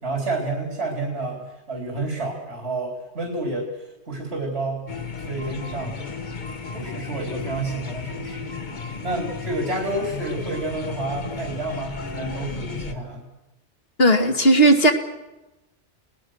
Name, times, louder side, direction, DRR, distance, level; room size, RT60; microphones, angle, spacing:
voice 1, 0.0-4.8 5.2-6.0 6.7-8.5 9.0-13.3, right 2 dB, 80° right, 2 dB, 4.0 m, -29 dB
sound 1, 4.9-12.9, left 5 dB, 45° left, 1.4 m, -34 dB
voice 2, 14.0-14.9, right 1 dB, 65° left, 6 dB, 2.4 m, -15 dB
29.5 x 20.0 x 6.4 m, 1.0 s
omnidirectional pair, 1.1 m